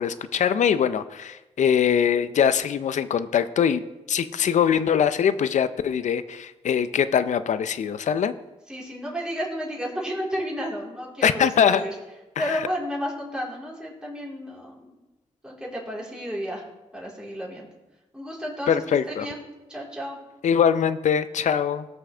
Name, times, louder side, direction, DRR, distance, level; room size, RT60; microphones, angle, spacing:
voice 1, 0.0-3.8 4.1-8.3 11.2-11.8 12.4-12.6 18.7-19.3 20.4-21.9, left 8 dB, 80° left, 13 dB, 0.5 m, -22 dB
voice 2, 8.7-11.9 12.4-15.0 15.4-16.6 16.9-17.7 18.1-18.8 19.1-19.4 19.7-20.2, equal, 5° right, -5 dB, 4.0 m, -32 dB
18.5 x 6.2 x 3.4 m, 1.0 s
cardioid pair, 75°, 12 cm